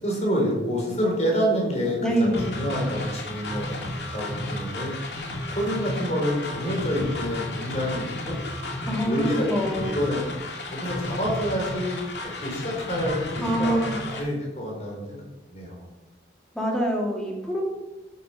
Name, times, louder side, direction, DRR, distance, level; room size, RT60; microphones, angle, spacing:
voice 1, 0.0-3.7 4.1-4.9 5.5-8.4 9.0-10.2 10.8-13.8 14.1-15.2 15.5-15.9, equal, 35° left, -1 dB, 4.5 m, -27 dB
voice 2, 2.0-2.6 8.8-9.9 13.4-13.9 16.5-17.6, equal, 5° left, -2 dB, 2.5 m, -25 dB
sound 1, 2.3-14.2, left 2 dB, 65° left, 2.6 m, -33 dB
12.0 x 8.2 x 5.8 m, 1.1 s
head